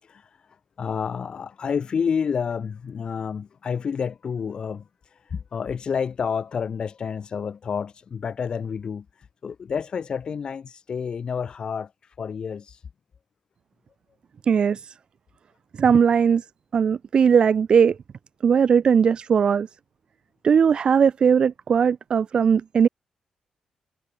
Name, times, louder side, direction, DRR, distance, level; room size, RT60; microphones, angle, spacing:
voice 1, 0.0-12.9, left 6 dB, 45° left, 6.3 m, -30 dB
voice 2, 14.5-14.9 15.8-16.4 16.7-18.0 18.4-19.7 20.4-22.9, right 7 dB, 50° right, 1.6 m, -19 dB
wide cardioid pair, 135°, 2 cm